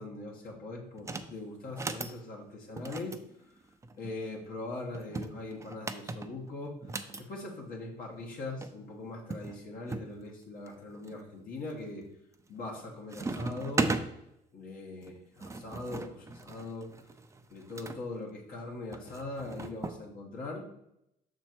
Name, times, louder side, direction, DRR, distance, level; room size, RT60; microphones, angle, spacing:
voice 1, 0.0-3.2 4.0-12.0 12.5-14.0 14.5-16.9 17.5-20.7, left 2 dB, 60° left, -1 dB, 1.4 m, -41 dB
sound 1, 1.0-1.3 1.7-2.2 2.8-4.1 4.9-7.2 8.3-8.4 8.6-8.7 9.3-10.1 10.7-11.2 11.7-12.1 12.4-12.8 13.1-14.1 15.0-18.0 18.9-20.0, right 3 dB, 15° right, 0.5 m, -37 dB
6.3 x 4.3 x 4.5 m, 0.81 s
cardioid pair, 110°, 17 cm